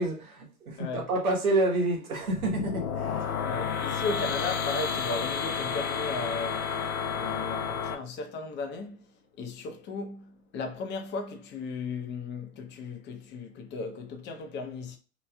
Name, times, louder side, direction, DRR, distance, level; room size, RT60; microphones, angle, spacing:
voice 1, 0.0-3.4, right 2 dB, 90° right, 1.3 m, -28 dB
voice 2, 0.8-1.1 3.4-6.7 7.1-9.0 9.4-15.0, left 4 dB, 25° left, 0.7 m, -36 dB
sound 1, 2.2-7.9, left 6 dB, 75° left, 0.6 m, -31 dB
3.0 x 2.8 x 2.3 m
hypercardioid pair, 105°, 42 cm